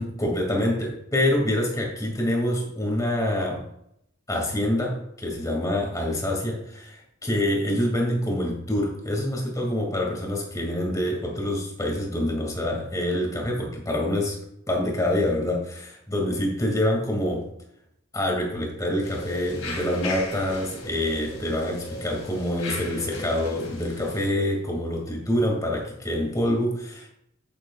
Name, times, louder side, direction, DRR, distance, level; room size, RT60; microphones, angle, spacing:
voice 1, 0.0-3.6 4.3-14.4 14.7-17.5 18.1-27.1, left 1 dB, 15° left, 0 dB, 2.4 m, -26 dB
sound 1, 19.0-24.3, left 1 dB, 65° left, 2.5 m, -36 dB
10.0 x 9.7 x 2.5 m, 0.75 s
head